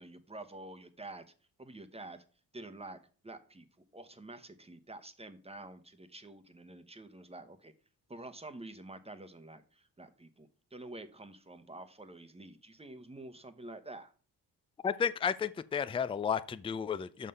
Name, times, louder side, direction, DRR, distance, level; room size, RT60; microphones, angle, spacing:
voice 1, 0.0-2.2 2.5-3.0 3.2-3.7 3.9-7.7 8.1-14.1, right 2 dB, 15° right, 1.0 m, -48 dB
voice 2, 14.8-17.3, left 7 dB, 15° left, 0.4 m, -32 dB
6.4 x 5.7 x 5.4 m
cardioid pair, 90°, 40 cm